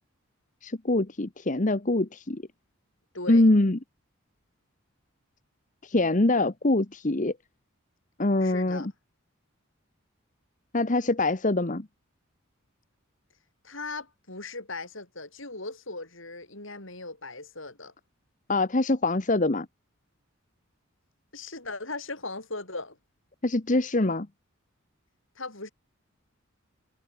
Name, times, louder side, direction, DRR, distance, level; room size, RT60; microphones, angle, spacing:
voice 1, 0.6-2.4 3.3-3.8 5.8-7.3 8.2-8.9 10.7-11.9 18.5-19.7 23.4-24.3, left 2 dB, 35° left, 1.1 m, -24 dB
voice 2, 3.1-3.4 8.4-8.9 13.6-17.9 21.3-23.0 25.4-25.7, left 3 dB, 65° left, 7.5 m, -38 dB
head